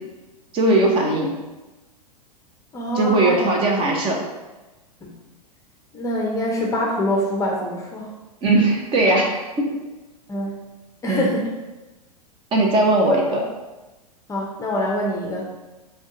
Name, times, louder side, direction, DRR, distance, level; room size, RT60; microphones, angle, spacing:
voice 1, 0.5-1.3 2.9-4.2 8.4-9.8 11.1-11.3 12.5-13.5, right 2 dB, 25° right, 0 dB, 0.8 m, -19 dB
voice 2, 2.7-3.5 5.0-5.1 5.9-8.1 10.3-10.6 11.0-11.5 14.3-15.4, left 1 dB, 15° left, -1 dB, 0.7 m, -24 dB
6.1 x 2.3 x 3.8 m, 1.1 s
figure-of-eight pair, 100°, 20 cm